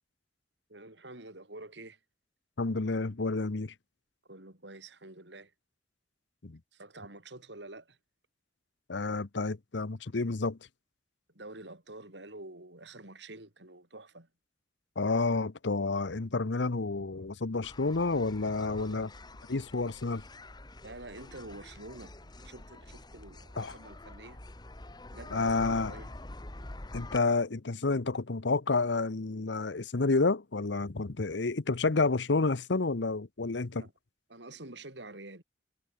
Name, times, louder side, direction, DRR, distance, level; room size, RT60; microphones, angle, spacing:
voice 1, 0.7-2.0 4.3-5.5 6.7-8.0 11.3-14.3 18.7-19.1 20.8-24.4 25.1-26.1 33.8-33.9 34.3-35.4, right 2 dB, 75° right, 5.3 m, -48 dB
voice 2, 2.6-3.7 6.4-6.6 8.9-10.6 15.0-19.1 19.5-20.2 23.6-23.7 25.3-25.9 26.9-33.9, left 3 dB, 80° left, 0.9 m, -30 dB
sound 1, 17.6-27.2, left 2 dB, 25° left, 1.2 m, -47 dB
head